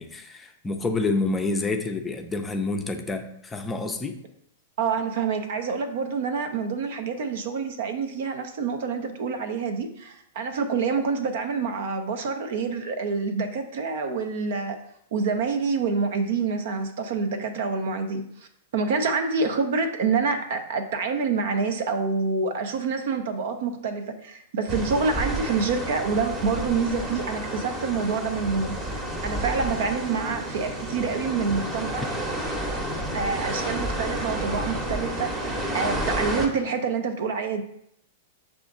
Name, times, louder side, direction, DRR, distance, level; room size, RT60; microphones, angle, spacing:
voice 1, 0.0-4.2, left 3 dB, 15° left, 5 dB, 0.5 m, -28 dB
voice 2, 4.8-14.8 15.1-18.5 18.7-32.1 33.1-37.6, right 5 dB, 65° right, 7 dB, 0.5 m, -27 dB
sound 1, 24.7-36.5, right 1 dB, 20° right, 0.9 m, -30 dB
5.8 x 2.5 x 3.7 m, 0.73 s
hypercardioid pair, 105°, 0 cm